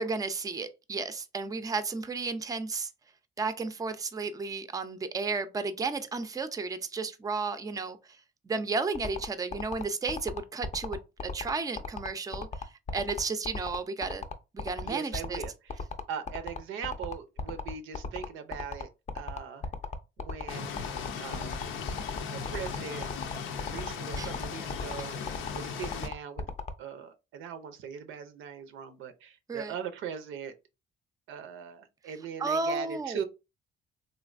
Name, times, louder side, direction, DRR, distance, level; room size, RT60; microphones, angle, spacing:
voice 1, 0.0-2.9 3.4-8.2 8.4-14.2 14.5-15.4 24.2-24.3 25.1-25.2 29.5-29.7 32.4-33.2, right 4 dB, 20° right, 0.4 m, -33 dB
sound 1, 8.9-26.7, left 5 dB, 35° left, 0.5 m, -36 dB
voice 2, 14.8-19.7 20.2-20.9 21.2-21.5 22.2-23.1 23.6-26.4 26.8-30.6 31.3-33.2, right 7 dB, 85° right, 0.6 m, -40 dB
sound 2, 20.5-26.1, left 6 dB, 90° left, 0.6 m, -37 dB
3.2 x 2.5 x 2.4 m
cardioid pair, 90°, 20 cm